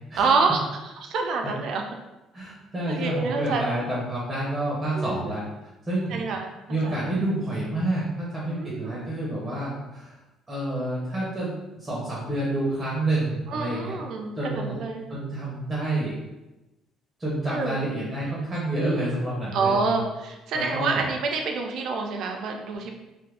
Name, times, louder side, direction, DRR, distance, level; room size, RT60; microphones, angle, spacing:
voice 1, 0.2-0.6 1.0-1.8 2.9-3.8 5.0-5.3 6.1-6.5 6.8-7.0 8.5-9.0 13.5-15.0 17.5-17.8 19.5-22.9, right 4 dB, 60° right, 3 dB, 0.4 m, -27 dB
voice 2, 2.3-5.4 5.9-6.2 6.7-10.1 10.5-11.5 11.8-14.0 14.4-14.8 15.1-16.1 17.2-20.0 20.5-21.0, right 1 dB, 15° right, -6 dB, 0.7 m, -28 dB
2.6 x 2.4 x 3.4 m, 1.0 s
cardioid pair, 150°, 0 cm